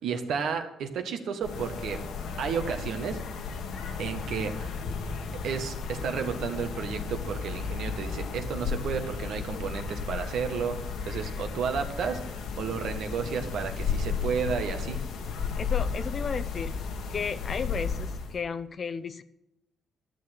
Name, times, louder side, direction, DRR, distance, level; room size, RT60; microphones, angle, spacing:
voice 1, 0.0-2.0 2.4-3.2 4.0-4.8 5.4-10.8 11.0-15.0, right 6 dB, 75° right, 6 dB, 1.7 m, -32 dB
sound 1, 1.4-18.4, left 5 dB, 75° left, 1.7 m, -34 dB
voice 2, 15.6-16.8 17.1-19.2, left 5 dB, 45° left, 13 dB, 0.8 m, -34 dB
12.5 x 6.7 x 9.0 m, 0.85 s
cardioid pair, 90°, 0 cm